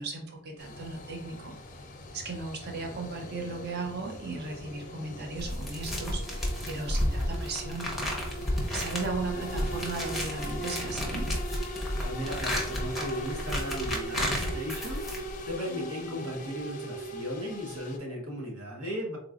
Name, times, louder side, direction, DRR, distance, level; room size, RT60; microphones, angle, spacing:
voice 1, 0.0-1.6 2.1-7.9 8.7-11.3, right 3 dB, 45° right, 2 dB, 0.6 m, -36 dB
sound 1, 0.6-18.0, right 1 dB, 35° left, 0.5 m, -40 dB
sound 2, 5.4-15.5, left 1 dB, ahead, 0.7 m, -32 dB
voice 2, 11.7-19.2, equal, 65° right, 0 dB, 1.1 m, -37 dB
3.8 x 2.9 x 2.4 m, 0.67 s
head